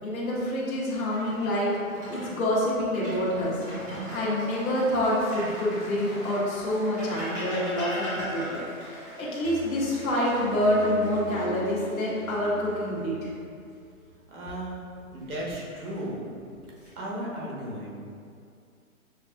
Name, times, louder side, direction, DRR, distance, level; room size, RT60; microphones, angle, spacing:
voice 1, 0.0-3.6 4.1-13.3, left 1 dB, 70° left, -7 dB, 1.3 m, -27 dB
sound 1, 1.1-2.3 2.8-4.3 5.2-6.3 7.0-8.8 10.7-11.4 11.8-12.0 14.9-15.5 16.2-16.9, equal, 15° right, 0.8 m, -38 dB
Cheering / Applause, 3.7-13.3, equal, 15° left, 1.1 m, -46 dB
sound 2, 9.4-14.7, right 2 dB, 35° left, 1.3 m, -44 dB
voice 2, 14.3-14.8 15.1-16.2 16.9-17.9, right 1 dB, 80° right, -5 dB, 1.5 m, -35 dB
6.3 x 2.6 x 2.4 m, 2.4 s
hypercardioid pair, 175°, 44 cm